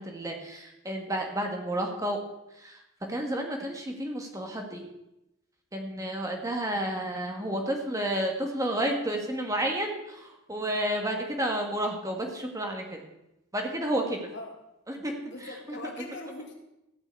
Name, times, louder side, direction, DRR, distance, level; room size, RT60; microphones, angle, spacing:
voice 1, 0.0-2.2 2.6-2.8 3.1-4.9 5.7-13.0 13.5-14.2 14.9-15.1 15.7-15.8, right 1 dB, 15° right, 2 dB, 1.7 m, -31 dB
voice 2, 15.2-16.5, left 2 dB, 55° left, 2 dB, 2.2 m, -41 dB
14.5 x 6.1 x 8.3 m, 0.88 s
head